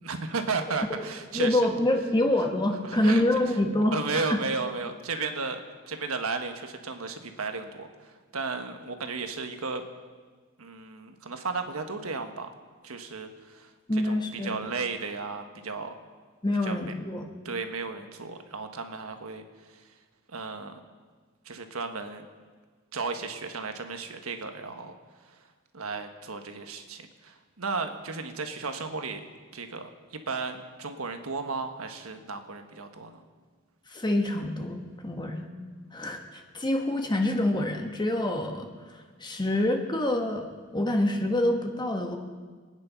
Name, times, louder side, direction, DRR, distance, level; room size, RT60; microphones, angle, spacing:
voice 1, 0.0-1.6 2.8-3.6 3.9-5.6 5.9-9.8 10.6-12.5 12.8-15.9 16.6-16.9 17.4-19.8 20.3-20.8 21.4-22.3 22.9-25.0 25.7-29.2 29.5-33.2, right 4 dB, 85° right, 6 dB, 1.4 m, -34 dB
voice 2, 1.3-4.3 5.2-5.3 13.9-14.6 16.4-17.3 33.9-35.5 35.9-38.7 39.2-40.4 40.7-42.2, left 1 dB, 20° left, 4 dB, 1.3 m, -26 dB
23.5 x 9.7 x 5.7 m, 1.5 s
head